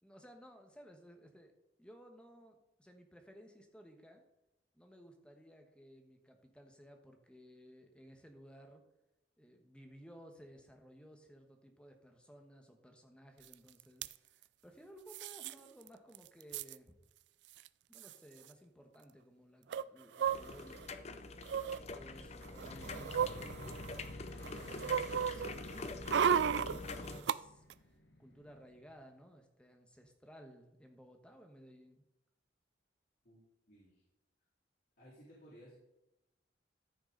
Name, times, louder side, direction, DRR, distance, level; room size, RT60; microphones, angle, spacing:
voice 1, 0.0-4.2 4.7-8.8 9.4-17.0 17.9-21.1 21.9-24.2 24.7-32.0, equal, 5° left, 4 dB, 1.2 m, -58 dB
sound 1, 13.5-13.6 13.8-14.1 15.1-15.5 15.9-16.0 16.2-16.8 17.6-17.7 17.9-18.1 19.7-20.9 21.4-21.8 22.4-24.1 24.4-27.4 27.7-27.8, right 8 dB, 70° right, 0.3 m, -35 dB
sound 2, 20.3-27.2, left 3 dB, 35° left, 0.6 m, -45 dB
sound 3, 22.6-29.2, left 1 dB, 70° left, 1.5 m, -54 dB
voice 2, 33.2-34.0 35.0-35.8, equal, 55° left, -9 dB, 3.6 m, -58 dB
14.0 x 5.9 x 4.0 m, 0.93 s
head